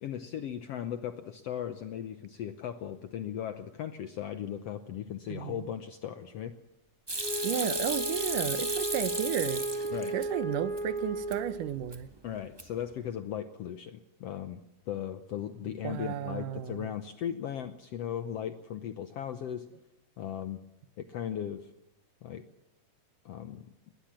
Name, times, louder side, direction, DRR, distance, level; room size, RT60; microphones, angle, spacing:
voice 1, 0.0-6.5 9.9-10.2 12.2-14.6 14.9-19.7 20.2-20.6 21.0-21.7 22.2-22.5 23.2-23.7, left 9 dB, 70° left, 11 dB, 1.5 m, -37 dB
voice 2, 5.3-5.7 7.4-9.6 10.1-12.1 15.8-16.9, right 11 dB, 75° right, 15 dB, 2.4 m, -33 dB
Hands / Sink (filling or washing), 7.1-10.3 10.6-11.4 11.7-12.2 12.4-12.9, right 2 dB, 20° right, 0.7 m, -35 dB
Wind instrument woodwind instrument, 7.2-11.8, right 1 dB, ahead, 4.0 m, -34 dB
20.5 x 19.5 x 7.4 m, 0.90 s
omnidirectional pair, 3.9 m